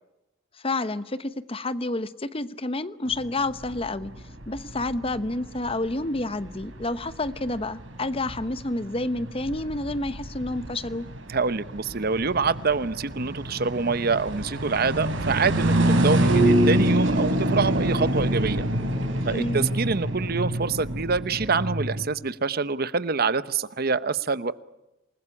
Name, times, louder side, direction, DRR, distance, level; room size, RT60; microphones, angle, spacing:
voice 1, 0.6-4.1 4.5-11.1 19.2-19.7, left 2 dB, 30° left, 14 dB, 0.9 m, -29 dB
sound 1, 3.1-22.1, right 1 dB, 85° right, 4.6 m, -26 dB
voice 2, 11.3-18.7 19.2-24.5, right 4 dB, 50° right, 15 dB, 0.9 m, -26 dB
28.0 x 20.5 x 9.9 m, 0.95 s
head